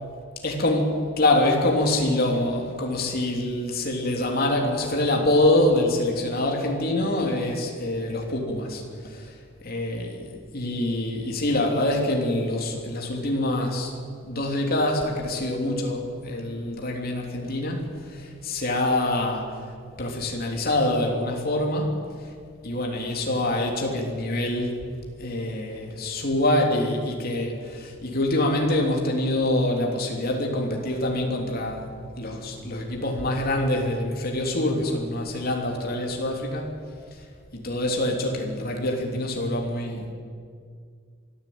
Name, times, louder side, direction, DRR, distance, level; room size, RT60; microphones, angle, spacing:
voice 1, 0.4-9.2 9.6-13.9 14.3-19.5 20.0-22.0 22.6-24.7 25.2-31.9 32.1-36.7 37.5-40.1, left 1 dB, 50° left, 0 dB, 3.2 m, -25 dB
23.5 x 14.0 x 8.7 m, 2.2 s
head